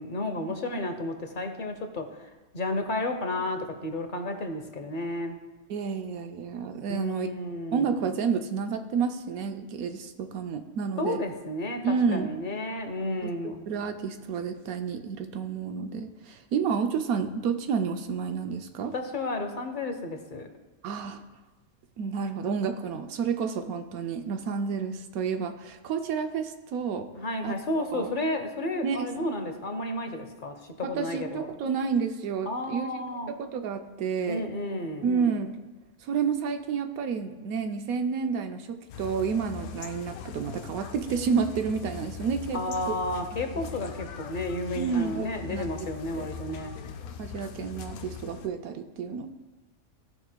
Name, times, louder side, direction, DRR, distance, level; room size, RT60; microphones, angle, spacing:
voice 1, 0.0-5.4 6.9-7.9 11.0-13.7 18.9-20.5 27.2-31.5 32.5-33.3 34.3-35.1 42.5-46.7, left 1 dB, 45° left, 6 dB, 0.7 m, -32 dB
voice 2, 5.7-7.3 7.7-11.2 11.8-12.3 13.2-13.3 13.7-18.9 20.8-21.2 22.0-27.1 27.4-28.1 28.8-29.1 30.8-32.9 33.3-34.4 35.0-35.6 36.0-42.9 44.7-45.7 46.1-46.3 47.2-49.3, right 6 dB, 75° right, 7 dB, 1.0 m, -30 dB
zoo searchingfordinosaurs, 38.9-48.5, left 7 dB, 80° left, 1.1 m, -41 dB
15.5 x 5.9 x 2.2 m, 1.2 s
omnidirectional pair, 1.5 m